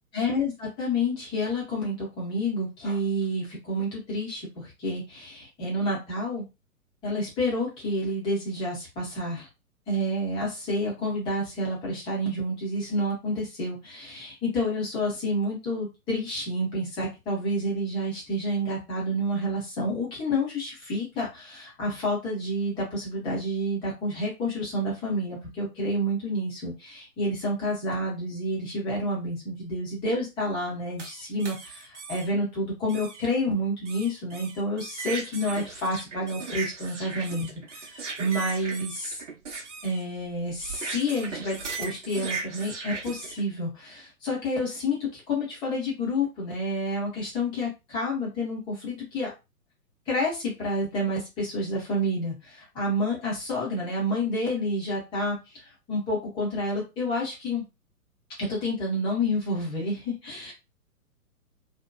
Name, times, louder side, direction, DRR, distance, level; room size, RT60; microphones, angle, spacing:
voice 1, 0.1-6.4 7.0-9.5 9.9-39.2 39.8-49.3 50.1-57.6 58.4-60.5, left 1 dB, 10° left, -4 dB, 0.7 m, -29 dB
sound 1, 31.0-32.3 32.9-33.3 33.8-43.4, right 4 dB, 55° right, 0.8 m, -38 dB
2.7 x 2.2 x 2.2 m, 0.25 s
figure-of-eight pair, 120°, 44 cm